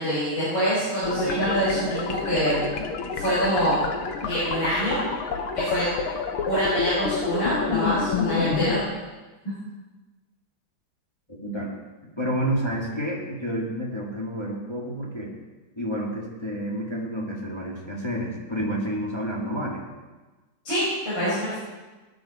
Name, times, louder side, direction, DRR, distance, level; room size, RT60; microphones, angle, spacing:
voice 1, 0.0-2.6 3.1-3.8 4.2-5.0 5.5-5.9 6.5-8.8 20.6-21.6, equal, 65° left, -11 dB, 6.3 m, -25 dB
sound 1, 1.0-8.8, left 5 dB, 85° left, 2.0 m, -28 dB
voice 2, 11.3-11.7 12.2-15.3 15.8-19.8, equal, 15° left, -4 dB, 1.9 m, -29 dB
18.0 x 10.5 x 4.3 m, 1.2 s
omnidirectional pair, 2.3 m